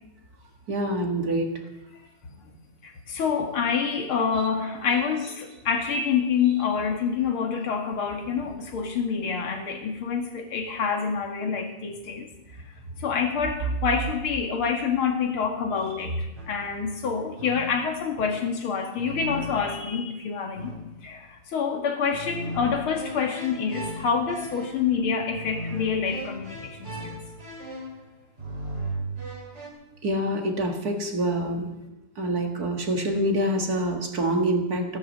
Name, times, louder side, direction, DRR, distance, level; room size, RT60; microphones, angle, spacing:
voice 1, 0.7-1.6 15.7-16.0 30.0-31.7 32.2-35.0, right 1 dB, 50° right, 4 dB, 2.3 m, -26 dB
voice 2, 2.8-12.3 13.0-20.7 21.0-27.2, left 6 dB, 90° left, 4 dB, 2.8 m, -27 dB
sound 1, 16.4-16.8 17.4-17.9 19.0-20.0 20.6-21.1 22.1-29.7, equal, 35° right, 3.2 m, -37 dB
14.5 x 11.0 x 7.4 m, 0.95 s
omnidirectional pair, 2.2 m